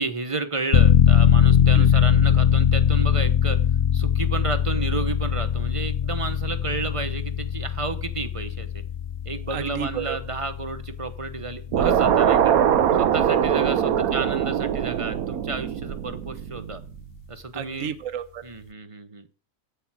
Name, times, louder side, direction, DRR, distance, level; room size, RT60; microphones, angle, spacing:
voice 1, 0.0-3.6 3.9-8.8 9.2-12.6 12.9-16.8 17.3-17.9 18.4-19.3, right 3 dB, 25° right, 9 dB, 1.0 m, -31 dB
sound 1, 0.7-13.2 13.6-13.7, left 9 dB, 50° left, 0.8 m, -21 dB
voice 2, 9.5-10.2 13.9-14.1 17.5-18.4, right 9 dB, 70° right, 11 dB, 1.3 m, -32 dB
sound 2, 11.7-17.0, right 9 dB, 90° right, 1.2 m, -22 dB
11.5 x 8.6 x 6.2 m, 0.41 s
omnidirectional pair, 1.5 m